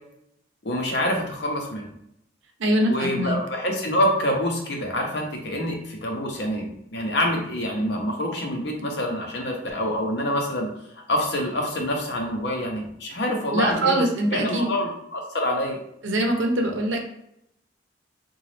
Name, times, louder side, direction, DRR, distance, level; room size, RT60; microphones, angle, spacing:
voice 1, 0.6-1.9 2.6-10.7 11.1-14.0 14.3-15.8, left 1 dB, 60° left, 1 dB, 0.7 m, -26 dB
voice 2, 2.6-3.4 13.5-14.7 16.0-17.0, right 1 dB, 85° right, 3 dB, 0.7 m, -23 dB
3.9 x 2.3 x 3.2 m, 0.77 s
head